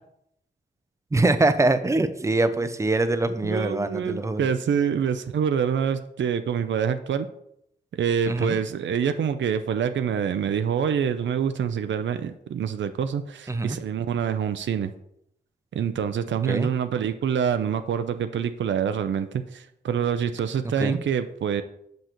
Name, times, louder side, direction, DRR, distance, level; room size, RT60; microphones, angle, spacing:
voice 1, 1.1-4.5 8.3-8.6 13.5-13.8 16.5-16.7 20.8-21.0, right 2 dB, 15° right, 10 dB, 0.4 m, -23 dB
voice 2, 3.4-7.3 8.0-14.9 15.7-21.6, right 7 dB, 85° right, 9 dB, 0.4 m, -26 dB
7.8 x 6.3 x 3.0 m, 0.76 s
wide cardioid pair, 150°, 19 cm